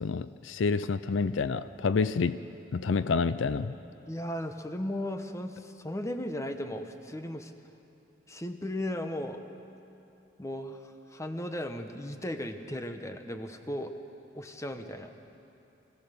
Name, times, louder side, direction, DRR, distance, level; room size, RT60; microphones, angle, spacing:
voice 1, 0.0-2.4 2.7-3.7, left 4 dB, 75° left, 14 dB, 0.5 m, -28 dB
voice 2, 4.1-7.5 8.3-9.4 10.4-13.9 14.3-15.1, left 1 dB, 15° left, 7 dB, 1.0 m, -36 dB
24.5 x 16.5 x 6.8 m, 2.8 s
head